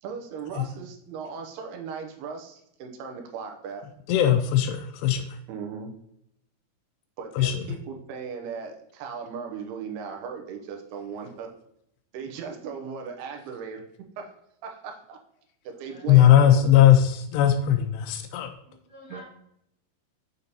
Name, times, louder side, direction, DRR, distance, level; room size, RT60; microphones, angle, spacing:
voice 1, 0.0-3.9 5.5-5.9 7.2-11.5 12.1-13.8 14.2-14.3 14.6-15.2 15.6-16.7 19.1-19.2, right 6 dB, 75° right, 3 dB, 2.6 m, -37 dB
voice 2, 4.1-5.2 7.4-7.5 16.1-18.5, left 11 dB, 85° left, 8 dB, 2.5 m, -18 dB
voice 3, 15.9-16.4 18.6-19.2, left 1 dB, 35° right, -8 dB, 1.9 m, -49 dB
6.7 x 6.6 x 2.8 m, 0.76 s
omnidirectional pair, 5.0 m